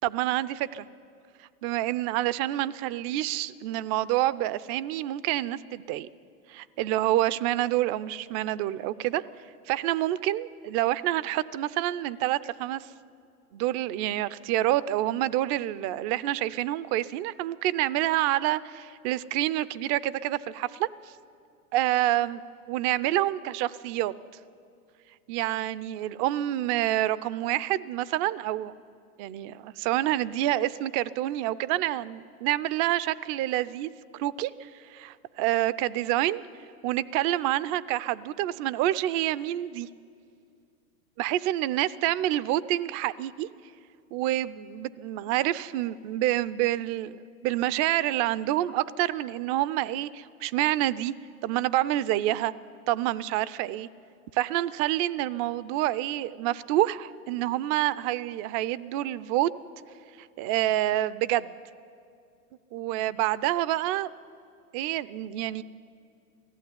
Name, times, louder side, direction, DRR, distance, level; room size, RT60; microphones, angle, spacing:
voice 1, 0.0-0.9 1.6-6.1 6.5-9.2 9.7-12.9 13.5-20.9 21.7-22.4 22.7-24.1 25.3-28.7 29.2-36.4 36.8-39.9 41.2-43.5 44.1-51.1 51.4-52.5 52.9-53.9 54.3-59.5 60.2-61.6 62.7-64.1 64.7-65.6, right 14 dB, 40° right, 17 dB, 0.6 m, -27 dB
18.5 x 15.0 x 9.6 m, 2.4 s
hypercardioid pair, 115°, 44 cm